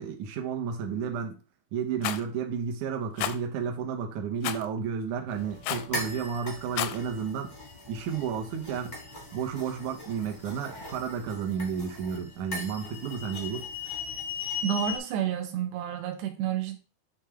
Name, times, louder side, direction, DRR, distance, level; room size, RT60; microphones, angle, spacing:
voice 1, 0.0-1.4 1.7-7.5 7.9-9.0 9.3-13.7, right 7 dB, 70° right, 2 dB, 1.9 m, -32 dB
Rattle, 2.0-2.2 3.2-3.4 4.4-4.7 5.6-5.9 6.6-7.0, left 12 dB, 85° left, 2.1 m, -30 dB
sound 1, 5.3-15.0, left 4 dB, 55° left, 0.5 m, -39 dB
voice 2, 14.6-16.8, right 10 dB, 90° right, 6 dB, 3.2 m, -30 dB
8.8 x 3.4 x 3.5 m, 0.33 s
omnidirectional pair, 4.7 m